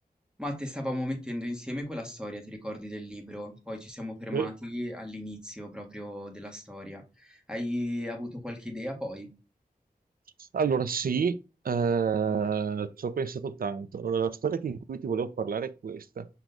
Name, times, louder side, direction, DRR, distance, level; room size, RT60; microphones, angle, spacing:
voice 1, 0.4-9.3, left 1 dB, 5° right, 1.2 m, -36 dB
voice 2, 10.4-11.4 11.6-16.3, right 6 dB, 70° right, 0.4 m, -29 dB
6.1 x 2.3 x 3.8 m
wide cardioid pair, 70°, 16 cm